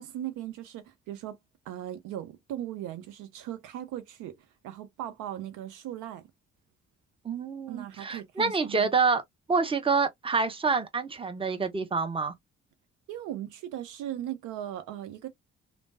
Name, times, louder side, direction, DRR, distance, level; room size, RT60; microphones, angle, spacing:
voice 1, 0.0-1.4 1.7-4.4 4.6-6.2 7.7-8.9 13.1-15.3, right 12 dB, 65° right, 0.6 m, -38 dB
voice 2, 7.2-9.2 9.5-12.3, right 4 dB, 15° right, 0.7 m, -27 dB
3.1 x 2.0 x 2.5 m
figure-of-eight pair, 40°, 34 cm